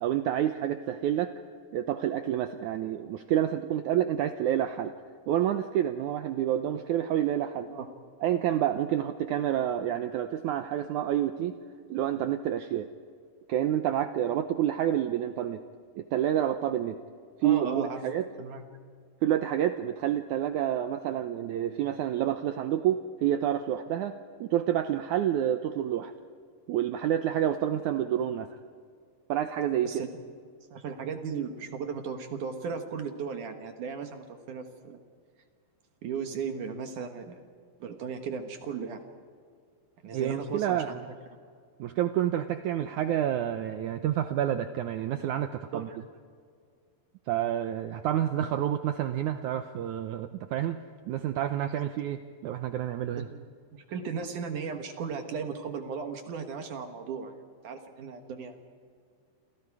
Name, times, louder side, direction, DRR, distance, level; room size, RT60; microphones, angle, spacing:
voice 1, 0.0-1.3 1.7-4.9 5.3-7.7 8.2-11.6 11.9-12.9 13.5-15.6 16.0-17.0 17.4-18.3 19.2-26.1 26.7-28.5 29.3-29.9 40.1-41.0 41.8-45.9 47.3-50.8 51.1-53.3, right 11 dB, 85° right, 8 dB, 1.7 m, -28 dB
voice 2, 17.4-18.0 18.4-18.6 29.8-30.1 30.7-35.0 36.0-37.4 37.8-39.0 40.0-41.0 45.7-46.0 53.1-53.4 53.7-57.3 57.6-58.5, right 6 dB, 60° right, 6 dB, 2.6 m, -36 dB
29.5 x 27.5 x 4.9 m, 2.1 s
omnidirectional pair, 4.5 m